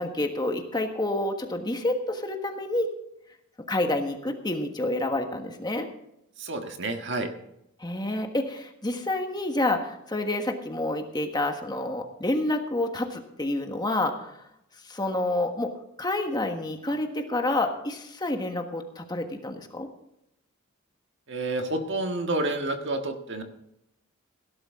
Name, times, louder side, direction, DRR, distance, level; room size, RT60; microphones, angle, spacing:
voice 1, 0.0-2.9 3.7-5.9 7.8-14.4 14.8-15.7 16.0-19.9, left 2 dB, 20° left, 5 dB, 1.4 m, -28 dB
voice 2, 6.4-7.3 21.3-23.4, right 2 dB, 55° right, 5 dB, 1.6 m, -29 dB
17.0 x 11.5 x 3.7 m, 0.80 s
head